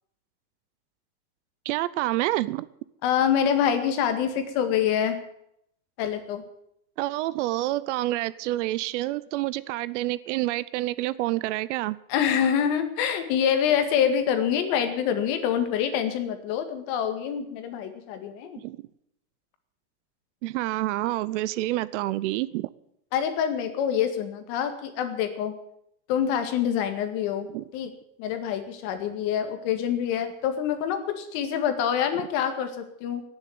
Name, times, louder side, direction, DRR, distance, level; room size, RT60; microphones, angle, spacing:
voice 1, 1.7-2.7 7.0-12.0 18.6-18.8 20.4-22.7 27.5-27.6 32.1-32.3, right 17 dB, 55° right, 18 dB, 0.6 m, -28 dB
voice 2, 3.0-5.2 6.0-6.4 12.1-18.6 23.1-25.6 26.1-27.9 28.2-33.2, left 8 dB, 45° left, 8 dB, 2.0 m, -26 dB
17.5 x 7.3 x 9.4 m, 0.76 s
supercardioid pair, 175°, 42 cm